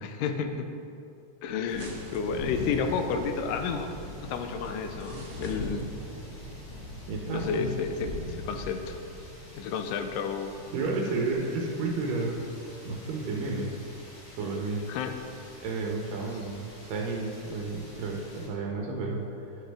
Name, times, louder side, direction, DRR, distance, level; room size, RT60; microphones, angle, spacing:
voice 1, 0.0-0.7 1.4-3.9 4.2-5.9 7.3-9.0 9.6-10.6 11.1-11.2 14.9-15.1, left 6 dB, 80° left, 6 dB, 2.1 m, -31 dB
sound 1, 1.4-6.8, right 2 dB, 55° right, 1.5 m, -52 dB
sound 2, 1.7-18.5, left 1 dB, 60° left, 0.9 m, -42 dB
voice 2, 7.1-7.7 10.7-12.4 12.8-13.7 14.4-14.8 15.6-19.5, right 3 dB, 85° right, 0 dB, 2.5 m, -32 dB
11.0 x 6.3 x 3.4 m, 2.6 s
omnidirectional pair, 3.8 m